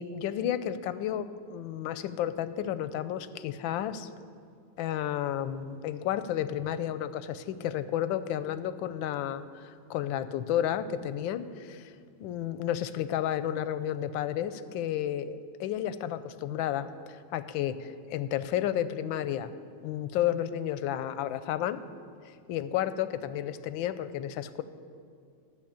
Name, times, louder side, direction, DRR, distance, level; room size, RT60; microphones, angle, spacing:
voice 1, 0.0-4.1 4.8-11.9 12.2-19.5 19.8-21.8 22.5-24.6, left 11 dB, 90° left, 13 dB, 1.3 m, -32 dB
12.0 x 6.6 x 8.8 m, 2.3 s
omnidirectional pair, 2.1 m